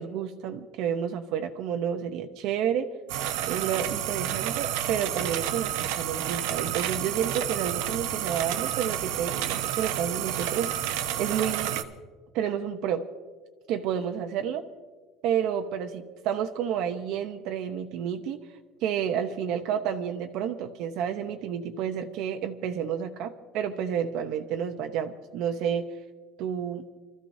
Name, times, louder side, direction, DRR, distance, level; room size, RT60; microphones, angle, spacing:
voice 1, 0.0-2.9 3.4-10.7 11.2-11.8 12.3-13.1 13.7-14.7 15.2-18.4 18.8-25.9 26.4-26.8, right 8 dB, 55° right, 6 dB, 0.8 m, -30 dB
sound 1, 3.1-11.8, right 11 dB, 85° right, 0.9 m, -30 dB
28.5 x 14.0 x 2.7 m, 1.4 s
cardioid pair, 170°, 0 cm